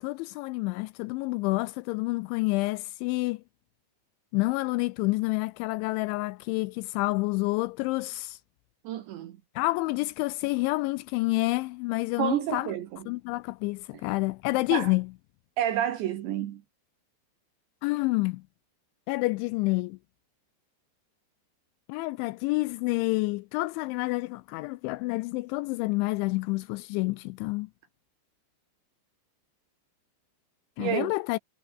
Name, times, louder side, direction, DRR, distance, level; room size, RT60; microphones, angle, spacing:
voice 1, 0.0-3.4 4.3-8.4 9.6-12.7 13.1-15.1 17.8-18.4 19.1-20.0 21.9-27.7 30.8-31.4, left 22 dB, 85° left, 2.7 m, -28 dB
voice 2, 8.9-9.4 12.2-13.0 14.7-14.9 15.6-16.6 30.8-31.1, right 11 dB, 70° right, 3.5 m, -29 dB
omnidirectional pair, 5.8 m